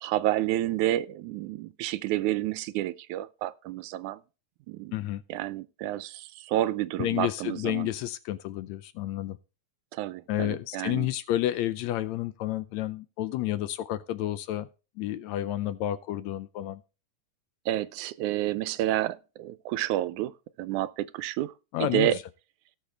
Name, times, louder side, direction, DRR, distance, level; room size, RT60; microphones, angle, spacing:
voice 1, 0.0-4.2 4.7-4.9 5.3-7.9 9.9-11.1 17.7-20.3 20.6-21.5 21.8-22.2, right 14 dB, 80° right, 2.1 m, -29 dB
voice 2, 4.9-5.2 7.0-9.4 10.3-14.7 15.0-16.8 21.7-22.2, left 14 dB, 75° left, 1.7 m, -30 dB
18.0 x 6.6 x 3.3 m
omnidirectional pair, 3.5 m